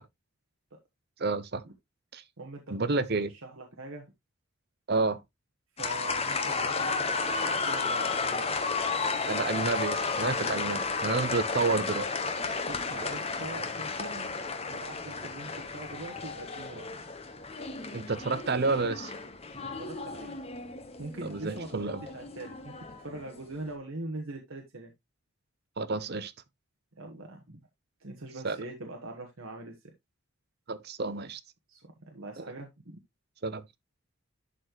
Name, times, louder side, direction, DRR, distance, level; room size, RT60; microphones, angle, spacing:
voice 1, 1.2-1.6 2.1-2.2 2.7-3.3 4.9-5.2 9.3-12.1 17.9-19.1 21.2-22.0 25.8-26.3 28.4-28.6 30.7-31.4 32.4-32.5 33.4-33.7, right 3 dB, 45° right, 0.7 m, -30 dB
voice 2, 2.9-4.1 5.8-8.4 12.7-14.3 14.6-16.9 19.7-20.4 21.0-24.9 26.9-27.7 28.0-29.9 31.7-33.0, right 2 dB, 65° right, 1.3 m, -42 dB
sound 1, 5.8-23.4, left 4 dB, 25° left, 1.0 m, -33 dB
11.5 x 4.3 x 3.1 m
head